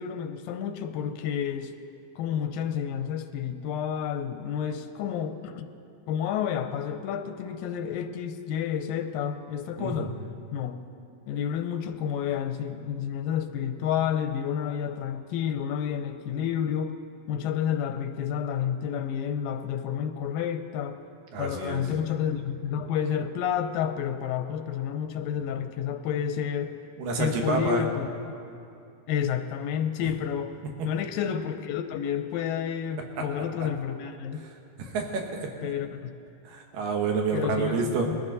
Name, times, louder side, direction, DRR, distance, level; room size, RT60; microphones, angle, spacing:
voice 1, 0.0-1.7 2.2-5.7 6.1-10.2 10.5-10.8 11.3-17.0 17.3-21.0 21.4-26.8 27.2-28.1 29.1-30.6 30.8-34.5 35.6-36.1 37.3-38.2, left 8 dB, 85° left, 8 dB, 2.3 m, -30 dB
voice 2, 9.8-10.1 21.3-21.8 27.0-27.8 33.2-33.3 34.8-35.7 36.4-38.1, right 4 dB, 70° right, 2 dB, 3.0 m, -28 dB
21.0 x 14.5 x 4.0 m, 2.6 s
omnidirectional pair, 4.1 m